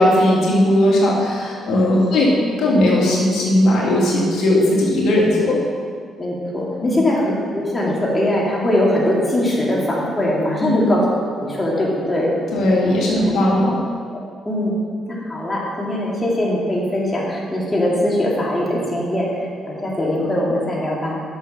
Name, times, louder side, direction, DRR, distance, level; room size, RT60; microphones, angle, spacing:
voice 1, 0.0-2.3 2.6-5.7 10.6-10.9 12.5-13.8, left 1 dB, 75° left, -4 dB, 2.0 m, -17 dB
voice 2, 6.2-11.1 11.3-12.6 13.1-13.2 14.5-14.7 15.1-19.3 19.6-21.2, left 1 dB, 20° left, -4 dB, 2.4 m, -21 dB
7.2 x 6.6 x 6.0 m, 2.1 s
cardioid pair, 90°, 0 cm